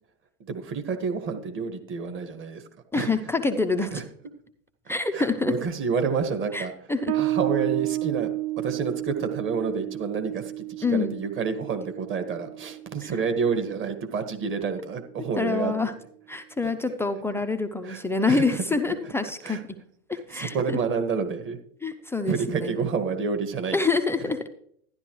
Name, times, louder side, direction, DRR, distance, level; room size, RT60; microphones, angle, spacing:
voice 1, 0.4-2.6 2.9-3.1 3.9-4.0 5.1-6.7 7.1-8.3 8.6-15.7 17.8-18.0 18.3-18.6 19.0-19.1 19.4-19.6 20.3-21.6 22.3-23.8, right 5 dB, 25° right, 7 dB, 1.6 m, -29 dB
voice 2, 2.9-3.9 4.9-5.5 6.5-7.1 10.8-11.2 15.4-15.9 16.3-19.8 20.1-20.8 21.8-22.8 23.7-24.5, left 3 dB, 5° left, 6 dB, 0.5 m, -26 dB
Bass guitar, 7.1-14.2, right 16 dB, 55° right, 0.7 m, -32 dB
12.5 x 11.0 x 3.1 m, 0.63 s
hypercardioid pair, 110°, 44 cm